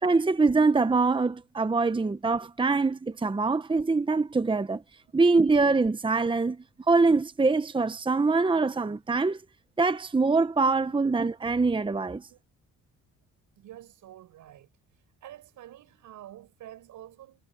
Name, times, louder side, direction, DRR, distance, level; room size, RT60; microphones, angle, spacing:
voice 1, 0.0-4.8 5.1-6.6 6.9-9.4 9.8-12.3, right 3 dB, 15° right, 1.0 m, -24 dB
voice 2, 13.6-14.7 15.2-17.4, right 12 dB, 80° right, 7.0 m, -48 dB
cardioid pair, 90°, 30 cm